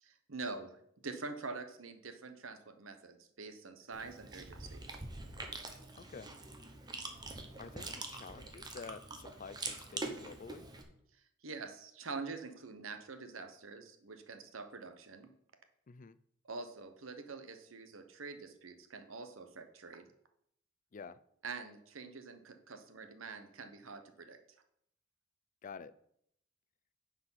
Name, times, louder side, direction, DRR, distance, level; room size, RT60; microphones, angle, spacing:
voice 1, 0.0-4.8 11.4-15.3 16.5-20.0 21.4-24.4, right 4 dB, 90° right, 1.0 m, -45 dB
Chewing mastication, 3.9-10.8, right 3 dB, 20° right, 1.0 m, -45 dB
voice 2, 6.0-6.3 7.6-10.7 15.9-16.2 20.9-21.2 25.6-25.9, left 5 dB, 40° left, 0.4 m, -49 dB
9.7 x 4.9 x 5.7 m
head